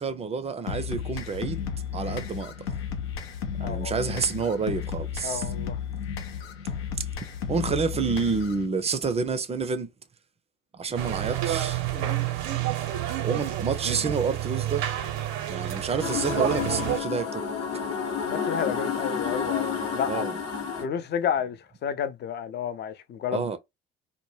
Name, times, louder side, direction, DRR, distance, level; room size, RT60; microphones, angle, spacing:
voice 1, 0.0-1.7 1.9-2.5 3.6-5.5 7.0-7.1 7.5-9.9 10.7-11.8 13.2-14.8 15.5-17.4 20.1-20.4 23.3-23.6, right 5 dB, 20° right, 0.5 m, -28 dB
sound 1, 0.7-8.7, left 7 dB, 80° left, 0.6 m, -33 dB
voice 2, 3.6-3.9 5.2-5.8 11.9-12.1 18.2-20.2 20.8-23.5, left 8 dB, 35° left, 0.4 m, -31 dB
sound 2, 11.0-17.0, right 12 dB, 65° right, 0.6 m, -29 dB
sound 3, 16.0-20.8, left 6 dB, 55° left, 0.9 m, -30 dB
2.0 x 2.0 x 3.1 m
hypercardioid pair, 60°, 30 cm